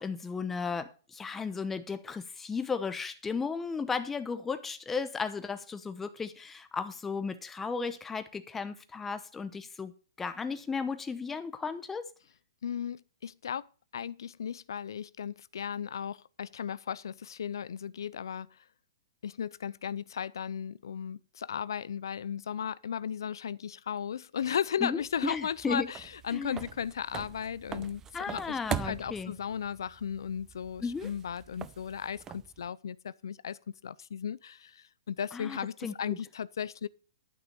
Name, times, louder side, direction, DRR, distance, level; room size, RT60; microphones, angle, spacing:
voice 1, 0.0-12.1 24.8-25.9 26.3-26.7 28.1-29.3 30.8-31.1 35.3-36.2, left 5 dB, 10° left, 0.9 m, -35 dB
voice 2, 12.6-13.7 13.9-18.6 19.2-28.0 28.3-36.9, left 8 dB, 80° left, 0.5 m, -36 dB
sound 1, 25.0-32.7, right 9 dB, 20° right, 0.6 m, -42 dB
12.0 x 6.2 x 6.8 m
hypercardioid pair, 145°, 2 cm